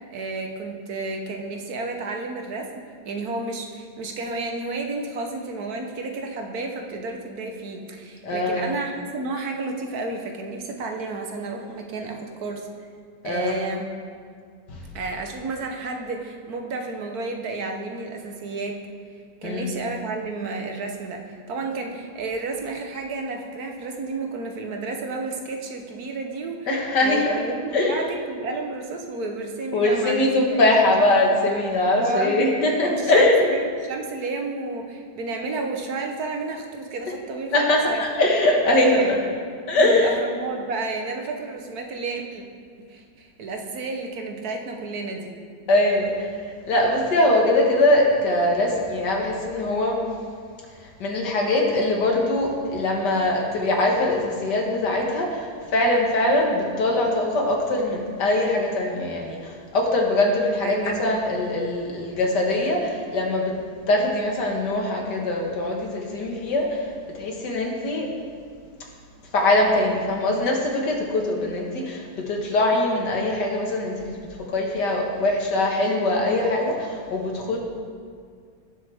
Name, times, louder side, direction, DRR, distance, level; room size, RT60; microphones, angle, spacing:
voice 1, 0.0-12.7 13.2-13.9 14.9-18.8 19.4-26.7 27.0-30.6 32.0-32.5 32.9-37.5 37.9-38.0 38.9-39.2 39.8-42.4 42.9-45.4 60.6-61.1, right 3 dB, 65° right, 3 dB, 1.4 m, -31 dB
voice 2, 8.2-8.7 13.2-13.6 14.7-14.8 19.4-19.8 26.7-27.4 27.7-28.0 29.7-33.5 37.5-39.2 39.7-40.2 45.7-46.3 46.7-50.0 51.0-63.6 63.9-66.8 67.1-68.1 69.3-74.2 74.5-77.6, left 1 dB, 85° left, 0 dB, 2.2 m, -22 dB
17.5 x 7.4 x 3.5 m, 2.1 s
omnidirectional pair, 1.8 m